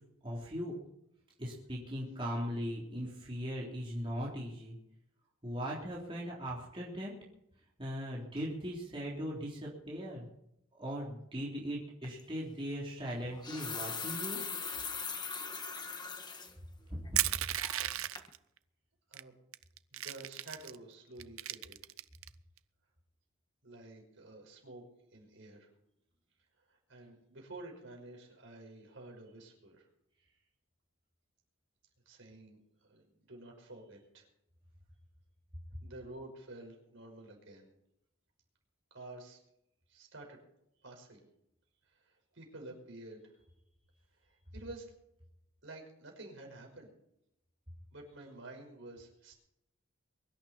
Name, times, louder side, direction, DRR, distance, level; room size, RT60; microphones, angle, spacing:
voice 1, 0.2-0.8 1.4-4.8 5.4-7.1 7.8-10.3 10.8-14.4 17.1-17.2, equal, 25° right, -4 dB, 3.4 m, -39 dB
sound 1, 12.0-12.2 13.2-16.5 17.0-17.1 17.6-17.9 18.2-18.3, left 5 dB, 20° left, 1.4 m, -40 dB
Crushing, 17.2-18.4 19.1-19.2 19.5-20.8 21.2-22.3, right 14 dB, 80° right, 0.6 m, -34 dB
voice 2, 19.9-21.8 23.6-24.8 25.1-25.7 26.7-29.9 32.1-32.6 32.9-34.3 35.8-37.7 38.9-39.4 39.9-40.4 40.8-41.3 41.9-43.5 44.2-44.9 45.6-46.9 47.9-49.3, right 2 dB, 60° right, 2 dB, 5.5 m, -50 dB
23.0 x 12.0 x 4.4 m, 0.79 s
head